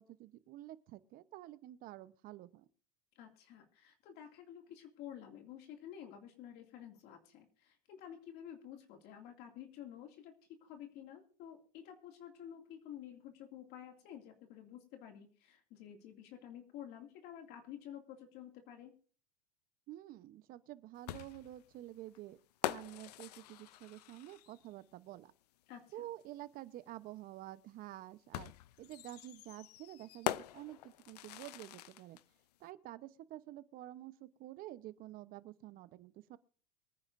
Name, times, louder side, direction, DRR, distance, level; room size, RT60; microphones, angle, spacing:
voice 1, 0.0-2.7 19.9-22.4 22.7-25.3 25.9-28.5 28.8-32.2 32.6-36.4, right 15 dB, 50° right, 15 dB, 0.9 m, -49 dB
voice 2, 3.2-18.9 25.7-26.1, left 10 dB, 55° left, 4 dB, 2.4 m, -51 dB
sound 1, 21.1-24.7 26.2-26.3 28.3-32.2, left 15 dB, 90° left, 0.5 m, -43 dB
23.5 x 9.8 x 2.6 m, 0.42 s
supercardioid pair, 115°, 20 cm